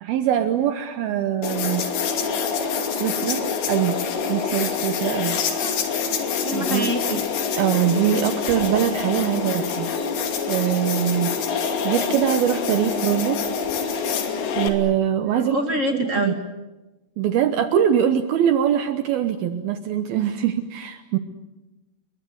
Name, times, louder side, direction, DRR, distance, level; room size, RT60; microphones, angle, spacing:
voice 1, 0.0-1.9 2.9-4.0 4.3-5.4 6.5-6.9 7.5-9.9 10.5-11.4 11.8-13.4 14.6-15.6 15.9-16.3 17.2-21.2, right 10 dB, 70° right, 8 dB, 2.7 m, -23 dB
sound 1, 1.4-14.7, left 6 dB, 85° left, 4.9 m, -26 dB
voice 2, 5.3-5.8 6.4-7.2 15.3-16.4, equal, 25° right, 4 dB, 1.8 m, -26 dB
29.5 x 23.0 x 8.1 m, 1.1 s
omnidirectional pair, 4.9 m